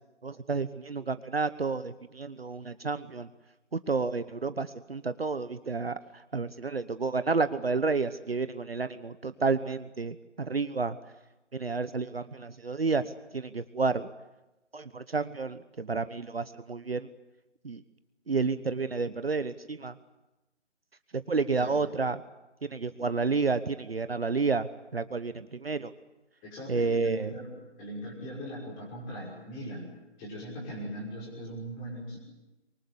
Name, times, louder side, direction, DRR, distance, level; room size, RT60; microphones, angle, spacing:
voice 1, 0.2-3.3 3.7-11.0 11.5-14.1 14.7-17.1 17.6-17.8 18.3-20.0 21.3-22.2 22.6-25.9 26.7-27.3, right 4 dB, 55° right, 13 dB, 1.2 m, -30 dB
voice 2, 26.4-29.9 30.2-32.2, equal, 10° left, -2 dB, 5.7 m, -40 dB
24.0 x 20.5 x 9.7 m, 1.0 s
figure-of-eight pair, 160°, 36 cm